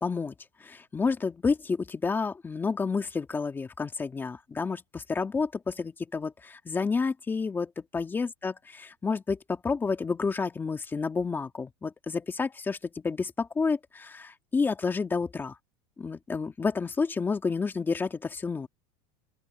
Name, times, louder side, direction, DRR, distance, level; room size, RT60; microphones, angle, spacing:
voice 1, 0.0-15.6 16.0-18.7, left 4 dB, 15° left, 2.4 m, -30 dB
open air
supercardioid pair, 150°, 14 cm